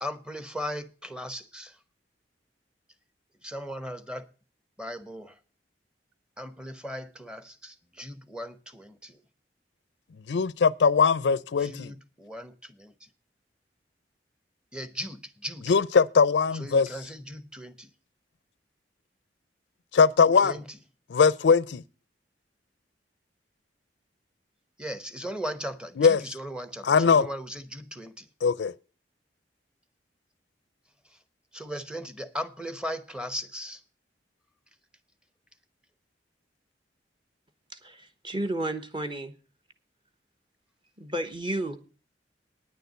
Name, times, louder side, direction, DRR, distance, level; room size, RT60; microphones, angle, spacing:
voice 1, 0.0-1.8 3.4-4.3 4.8-5.4 6.4-9.2 11.6-13.1 14.7-15.7 16.5-17.9 20.4-20.8 24.8-28.3 31.1-31.2 31.5-33.8, equal, 5° right, 0.8 m, -38 dB
voice 2, 10.3-11.9 15.7-16.9 19.9-20.5 21.1-21.8 26.0-26.2 26.8-27.3 28.4-28.7, left 5 dB, 70° left, 0.4 m, -21 dB
voice 3, 37.7-39.3 41.0-41.8, right 1 dB, 25° right, 1.1 m, -32 dB
9.7 x 6.8 x 8.0 m
head